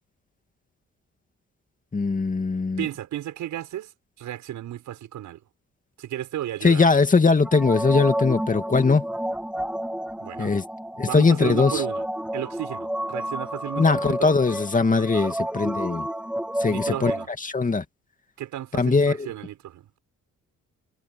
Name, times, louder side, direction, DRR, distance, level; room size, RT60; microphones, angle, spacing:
voice 1, 1.9-2.8 6.6-9.0 10.4-10.6 11.0-11.8 13.8-16.1 16.6-17.1 17.4-17.8 18.8-19.3, left 4 dB, 25° left, 2.4 m, -20 dB
voice 2, 2.8-3.9 4.2-5.4 6.0-7.0 10.2-10.5 11.0-12.1 12.3-14.4 15.0-15.4 16.7-17.3 18.4-20.0, right 12 dB, 80° right, 7.0 m, -34 dB
sound 1, 7.4-17.3, right 1 dB, 5° right, 2.6 m, -30 dB
cardioid pair, 90°, 30 cm